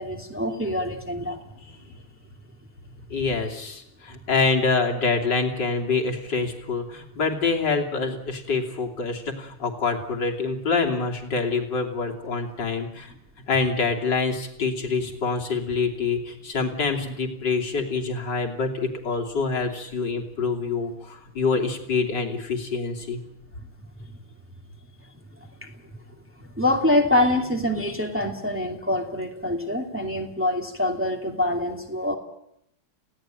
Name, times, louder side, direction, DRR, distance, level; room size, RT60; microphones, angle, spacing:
voice 1, 0.0-1.4 25.6-25.7 26.6-32.2, left 1 dB, 5° right, 1 dB, 2.5 m, -25 dB
voice 2, 3.1-13.1 13.5-23.2, left 4 dB, 55° left, 2 dB, 3.6 m, -26 dB
29.5 x 17.0 x 9.0 m, 0.80 s
omnidirectional pair, 2.4 m